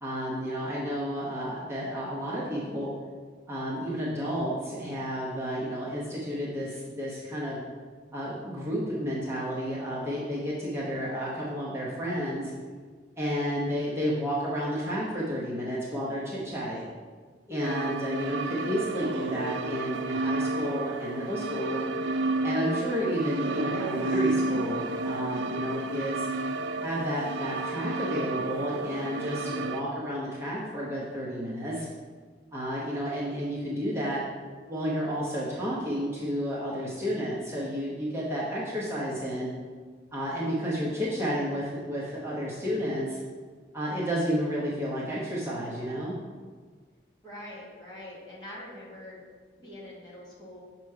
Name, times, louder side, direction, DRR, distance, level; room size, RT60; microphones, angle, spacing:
voice 1, 0.0-2.9 3.5-7.6 8.1-12.5 13.2-16.9 17.5-21.8 22.4-26.3 26.8-31.9 32.5-34.2 34.7-39.5 40.1-43.2 43.7-46.2, equal, 15° right, -7 dB, 0.9 m, -31 dB
sound 1, 17.6-29.8, right 2 dB, 90° right, 0.3 m, -31 dB
voice 2, 47.2-49.2 49.5-50.6, left 1 dB, 25° left, -6 dB, 1.4 m, -44 dB
6.5 x 3.0 x 4.8 m, 1.5 s
head